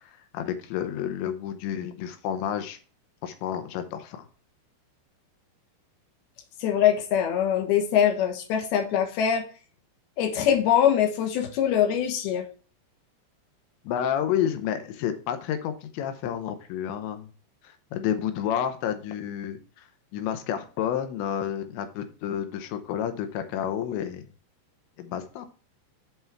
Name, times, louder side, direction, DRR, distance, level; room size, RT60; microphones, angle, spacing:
voice 1, 0.0-2.8 3.2-4.3 13.8-17.3 17.6-19.8 20.1-24.3 25.0-25.5, left 9 dB, 85° left, 8 dB, 3.2 m, -30 dB
voice 2, 6.6-9.4 10.2-12.4, left 9 dB, 70° left, 5 dB, 2.9 m, -23 dB
7.4 x 5.7 x 4.6 m, 0.38 s
omnidirectional pair, 5.1 m